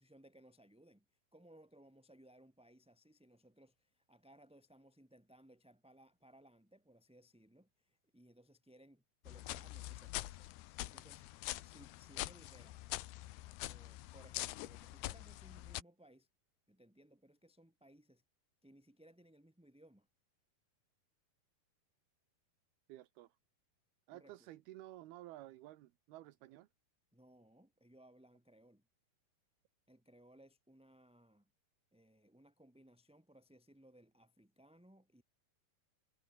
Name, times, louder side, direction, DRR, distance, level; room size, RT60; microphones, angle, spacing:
voice 1, 0.0-10.5 10.8-11.3 11.6-12.8 13.7-16.3 16.7-18.2 18.6-20.1 24.1-24.5 27.1-28.9 29.9-31.5 31.9-35.2, right 1 dB, ahead, 2.2 m, -63 dB
sound 1, 9.3-15.8, left 17 dB, 85° left, 3.0 m, -45 dB
voice 2, 22.9-23.4 24.1-26.7, right 16 dB, 80° right, 3.0 m, -53 dB
omnidirectional pair, 4.6 m